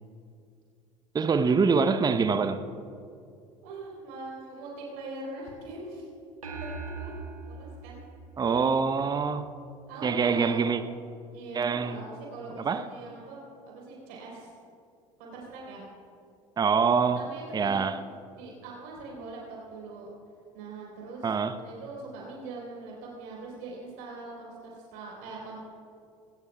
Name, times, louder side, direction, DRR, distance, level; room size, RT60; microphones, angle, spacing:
voice 1, 1.1-2.6 8.4-9.5 10.0-10.8 11.5-12.0 12.6-12.8 16.6-17.2 17.5-18.0 21.2-21.6, right 5 dB, 20° right, 10 dB, 0.8 m, -25 dB
voice 2, 3.6-6.1 6.6-8.0 8.4-8.6 9.9-10.7 11.3-14.5 15.2-15.9 17.1-17.9 18.4-20.1 20.5-21.3 21.6-25.6, right 2 dB, 60° right, -2 dB, 4.2 m, -42 dB
sound 1, 6.4-9.1, right 4 dB, 80° right, 1.8 m, -40 dB
22.0 x 19.5 x 2.4 m, 2.4 s
figure-of-eight pair, 65°, 18 cm